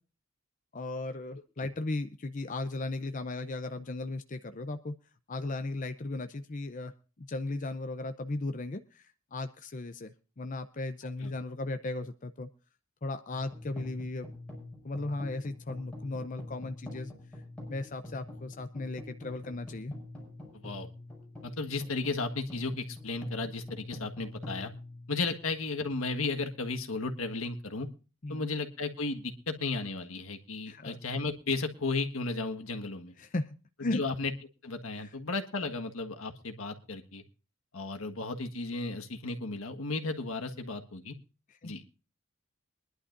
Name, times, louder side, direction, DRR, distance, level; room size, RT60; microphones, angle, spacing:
voice 1, 0.7-4.9 5.3-6.9 7.2-12.5 13.0-14.3 14.8-17.1 17.7-19.9 28.2-28.5 30.7-31.0 33.2-33.5 33.8-34.0 34.9-35.1 41.5-41.7, left 2 dB, 40° left, 9 dB, 0.6 m, -36 dB
sound 1, 13.3-25.7, left 2 dB, 5° left, 6.2 m, -46 dB
voice 2, 21.4-24.7 25.1-27.9 28.3-33.1 33.8-34.3 34.6-37.2 37.7-41.1 41.6-41.9, left 3 dB, 80° left, 5 dB, 1.6 m, -34 dB
23.0 x 11.0 x 2.6 m, 0.34 s
head